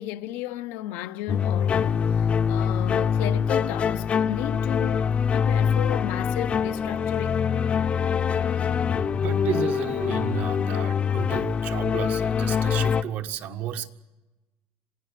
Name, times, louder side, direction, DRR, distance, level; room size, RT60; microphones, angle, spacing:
voice 1, 0.0-7.5, left 14 dB, 85° left, 0.9 m, -34 dB
sound 1, 1.3-13.0, left 7 dB, 35° left, 0.7 m, -24 dB
voice 2, 8.9-13.9, right 9 dB, 65° right, 1.6 m, -33 dB
27.0 x 17.0 x 8.2 m
cardioid pair, 130°, 4 cm